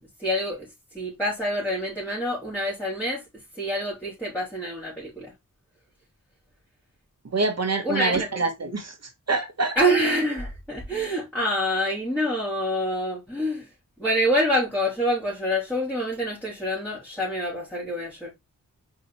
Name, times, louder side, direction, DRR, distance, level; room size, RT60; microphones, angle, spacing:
voice 1, 0.2-0.7 0.9-3.2 3.6-5.3 7.8-8.4 9.7-13.7 14.0-18.3, equal, 5° left, 3.9 m, -26 dB
voice 2, 7.3-8.9 9.3-9.8, right 3 dB, 50° right, 1.6 m, -25 dB
5.3 x 5.0 x 4.3 m
wide cardioid pair, 120°, 34 cm